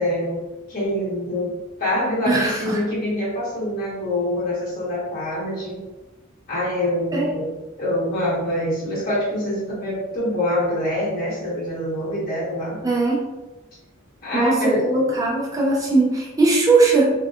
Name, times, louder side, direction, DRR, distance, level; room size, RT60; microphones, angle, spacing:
voice 1, 0.0-1.5 1.8-5.8 6.5-7.5 7.8-12.8 14.2-15.1, left 1 dB, 45° left, -9 dB, 1.1 m, -25 dB
voice 2, 2.3-2.8 7.1-7.3 12.8-13.2 14.3-17.1, right 3 dB, 15° right, -4 dB, 0.4 m, -19 dB
2.7 x 2.2 x 2.3 m, 1.1 s
head